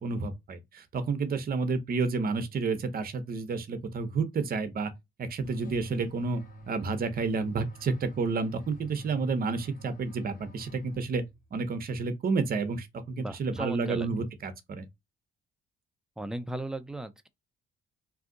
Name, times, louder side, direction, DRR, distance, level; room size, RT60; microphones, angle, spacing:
voice 1, 0.0-4.9 5.2-11.2 11.5-14.9, right 4 dB, 50° right, 0.8 m, -30 dB
sound 1, 5.4-11.5, right 1 dB, 45° left, 1.3 m, -47 dB
voice 2, 13.2-14.1 16.2-17.3, right 1 dB, 5° right, 0.4 m, -36 dB
2.7 x 2.3 x 3.8 m
cardioid pair, 90°, 20 cm